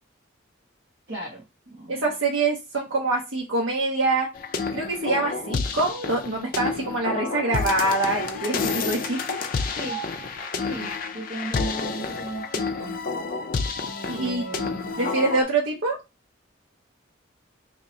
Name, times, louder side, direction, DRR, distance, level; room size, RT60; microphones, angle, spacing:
voice 1, 1.1-1.4 1.7-2.0 9.7-10.0 10.7-10.9 11.1-13.0 13.8-15.1, right 2 dB, 55° right, -5 dB, 1.1 m, -36 dB
voice 2, 1.9-4.3 4.7-9.4 14.1-14.4 15.0-16.0, right 2 dB, 80° right, -1 dB, 0.7 m, -25 dB
sound 1, 4.3-15.4, left 4 dB, 45° left, 0.4 m, -29 dB
2.8 x 2.7 x 4.2 m, 0.25 s
head